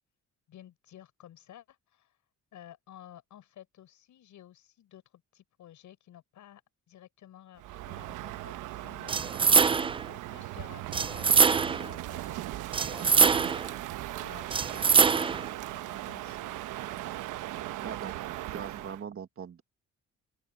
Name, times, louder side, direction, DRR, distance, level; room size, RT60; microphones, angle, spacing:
voice 1, 0.5-2.2 2.5-6.6 6.9-9.7 10.0-11.5 11.8-13.5 14.2-15.4 15.7-16.4, left 11 dB, 75° left, 7.5 m, -53 dB
Crow, 7.6-19.0, right 15 dB, 90° right, 1.1 m, -38 dB
sound 1, 9.1-10.1 10.9-11.9 12.7-13.7 14.5-15.5, right 5 dB, 20° right, 0.3 m, -23 dB
voice 2, 17.8-19.6, right 7 dB, 45° right, 1.8 m, -41 dB
open air
cardioid pair, 90°, 30 cm